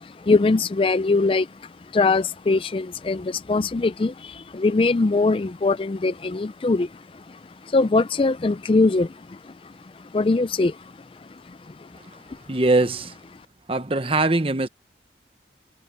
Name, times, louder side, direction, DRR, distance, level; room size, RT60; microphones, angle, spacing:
voice 1, 0.0-11.9 12.3-12.4, left 3 dB, 30° left, 0.4 m, -23 dB
voice 2, 12.5-13.1 13.7-14.7, right 2 dB, 30° right, 0.9 m, -21 dB
head